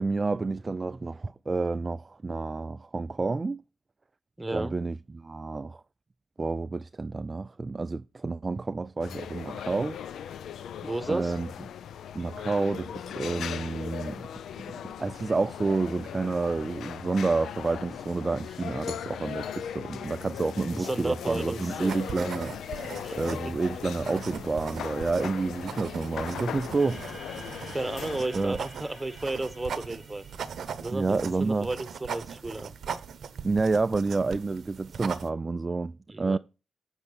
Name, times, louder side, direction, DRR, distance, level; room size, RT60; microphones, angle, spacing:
voice 1, 0.0-3.6 4.5-5.8 6.4-10.2 11.1-11.5 12.1-14.2 14.6-22.8 23.1-27.5 28.3-28.6 30.9-31.7 33.4-36.4, right 3 dB, 35° right, 0.3 m, -29 dB
voice 2, 4.4-4.7 10.8-11.4 20.7-21.9 23.0-23.2 23.4-23.5 27.7-30.3 30.8-32.7 36.1-36.4, right 2 dB, 20° right, 1.1 m, -33 dB
sound 1, 9.0-28.3, left 9 dB, 80° left, 0.3 m, -39 dB
sound 2, 21.8-35.3, right 7 dB, 70° right, 0.8 m, -40 dB
sound 3, 26.7-31.2, equal, 40° left, 4.5 m, -49 dB
8.1 x 6.4 x 4.1 m
supercardioid pair, 50°, 0 cm